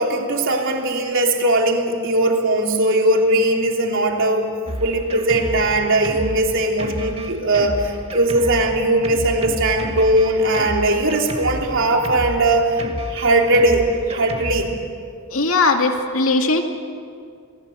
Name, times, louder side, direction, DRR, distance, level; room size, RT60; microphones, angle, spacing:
voice 1, 0.0-4.5 4.8-12.8 13.1-14.7, right 1 dB, 60° right, 1 dB, 3.4 m, -19 dB
Drum kit, 4.7-14.7, right 1 dB, 30° right, 1.9 m, -31 dB
voice 2, 15.3-16.6, left 3 dB, 70° left, 3 dB, 2.5 m, -18 dB
28.5 x 19.5 x 7.9 m, 2.3 s
head